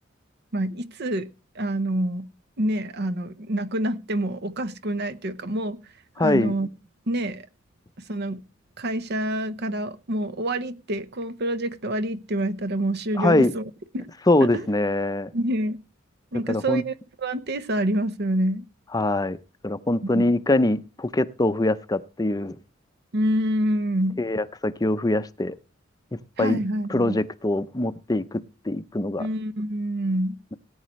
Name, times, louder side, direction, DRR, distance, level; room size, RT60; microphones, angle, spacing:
voice 1, 0.5-1.3 1.5-2.3 2.6-5.8 6.2-6.7 7.1-7.5 8.1-8.4 8.8-13.6 13.9-14.1 14.4-14.6 15.3-15.8 16.3-16.9 17.2-18.6 20.1-20.2 23.1-24.2 26.4-27.2 29.2-30.4, right 1 dB, 55° right, 0.9 m, -27 dB
voice 2, 6.2-6.5 13.2-13.5 14.3-15.3 16.5-16.8 18.9-19.4 19.6-22.6 24.2-25.6 26.4-26.6 26.9-29.3, left 2 dB, 20° left, 0.6 m, -23 dB
18.5 x 9.6 x 3.1 m
head